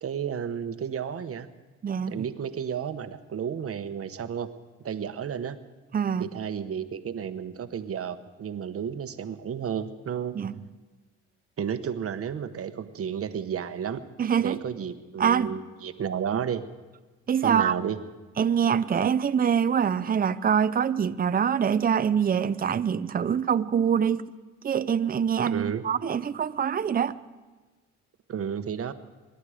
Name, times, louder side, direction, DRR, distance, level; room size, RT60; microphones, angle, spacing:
voice 1, 0.0-1.5 2.1-4.5 4.8-5.6 6.2-10.3 11.6-14.0 14.4-16.6 17.4-18.0 25.5-25.8 28.3-28.9, right 8 dB, 50° right, 10 dB, 1.1 m, -32 dB
voice 2, 1.8-2.2 5.9-6.3 10.3-10.5 14.2-14.6 15.2-15.5 17.3-17.7 18.4-24.3 24.6-27.2, right 7 dB, 30° right, 14 dB, 0.6 m, -24 dB
25.0 x 11.5 x 5.0 m, 1.3 s
cardioid pair, 90°, 30 cm